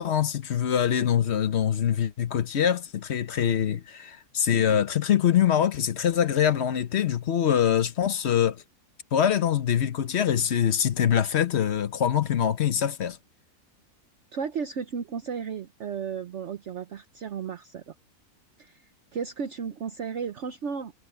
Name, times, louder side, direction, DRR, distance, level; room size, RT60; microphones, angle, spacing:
voice 1, 0.0-8.6 9.1-13.2, left 9 dB, 50° left, 1.0 m, -24 dB
voice 2, 14.3-17.9 18.6-18.8 19.1-20.9, right 6 dB, 55° right, 1.1 m, -34 dB
omnidirectional pair, 1.6 m